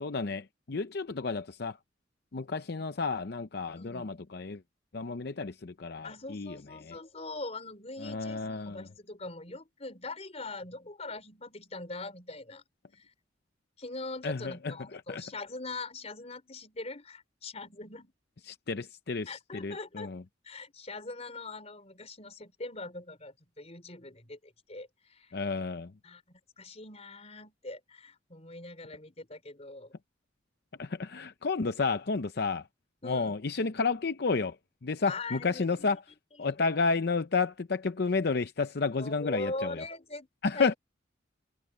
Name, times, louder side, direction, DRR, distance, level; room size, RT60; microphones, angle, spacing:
voice 1, 0.0-1.8 2.3-4.6 4.9-6.5 6.8-7.0 8.0-8.9 14.2-15.2 18.5-20.2 25.3-25.9 30.8-32.6 33.0-34.6 34.8-36.0 36.4-39.8 40.4-40.7, left 4 dB, 60° left, 0.7 m, -31 dB
voice 2, 3.6-4.2 6.0-12.6 12.9-13.1 13.8-18.1 19.3-20.1 20.4-25.4 26.0-29.9 33.0-33.4 35.1-36.0 36.4-36.6 39.0-40.3 40.5-40.8, left 2 dB, 35° left, 4.4 m, -42 dB
head